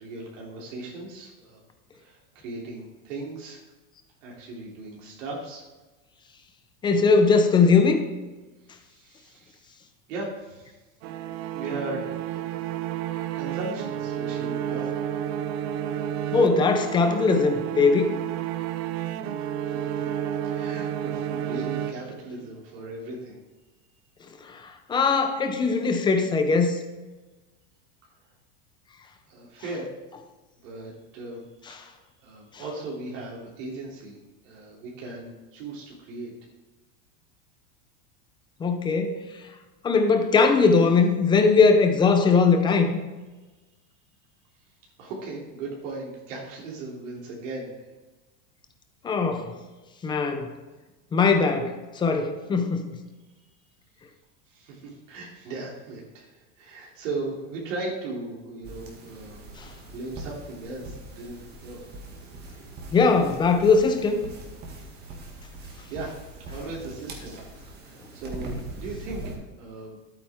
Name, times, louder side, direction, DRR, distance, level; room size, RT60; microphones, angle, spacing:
voice 1, 0.0-1.6 2.0-3.6 4.2-5.6 8.7-9.8 10.1-10.8 11.5-12.5 13.3-14.9 19.6-20.0 20.4-23.4 29.3-29.9 30.6-31.4 31.7-34.2 34.4-36.3 45.0-47.7 54.5-59.5 59.9-61.8 65.9-66.1 66.5-67.4 67.7-70.0, right 2 dB, 75° right, -3 dB, 2.9 m, -37 dB
voice 2, 6.8-8.0 16.3-18.1 24.5-24.6 24.9-26.8 38.6-39.1 39.8-43.0 49.0-49.5 50.0-50.5 51.1-52.9 62.9-64.2, left 4 dB, 10° left, 6 dB, 0.6 m, -20 dB
sound 1, 11.0-22.5, right 10 dB, 55° right, 0.6 m, -31 dB
sound 2, 58.6-69.4, right 2 dB, 25° right, 1.6 m, -41 dB
11.5 x 8.7 x 3.5 m, 1.2 s
supercardioid pair, 165°, 38 cm